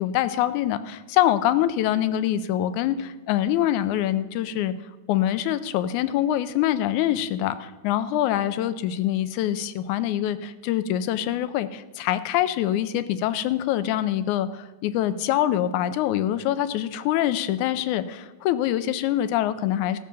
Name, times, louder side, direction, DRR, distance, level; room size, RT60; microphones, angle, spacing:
voice 1, 0.0-4.7 5.1-20.0, left 12 dB, 80° left, 13 dB, 2.0 m, -24 dB
15.0 x 7.0 x 6.1 m, 1.2 s
omnidirectional pair, 3.5 m